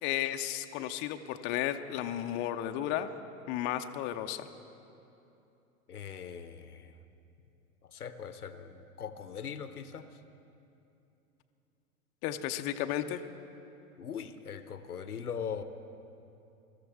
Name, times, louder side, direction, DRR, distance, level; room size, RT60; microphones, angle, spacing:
voice 1, 0.0-3.1 3.5-4.5 12.2-13.2, left 12 dB, 25° left, 7 dB, 0.5 m, -33 dB
voice 2, 5.9-7.0 7.8-10.2 14.0-15.6, left 7 dB, 90° left, 12 dB, 0.8 m, -41 dB
21.5 x 13.5 x 3.5 m, 2.8 s
figure-of-eight pair, 100°, 44 cm